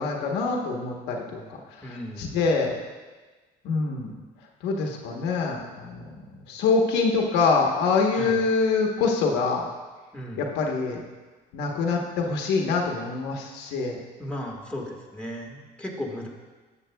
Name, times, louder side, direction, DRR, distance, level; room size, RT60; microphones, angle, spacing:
voice 1, 0.0-1.4 1.7-1.8 2.2-2.7 3.6-4.1 4.6-6.1 6.5-9.7 10.4-11.0 11.5-14.0, left 4 dB, 90° left, 1 dB, 1.1 m, -25 dB
voice 2, 1.8-2.5 8.1-8.4 10.1-10.5 14.2-16.3, equal, 5° left, -2 dB, 1.6 m, -36 dB
13.0 x 7.2 x 2.3 m, 1.3 s
cardioid pair, 110°, 17 cm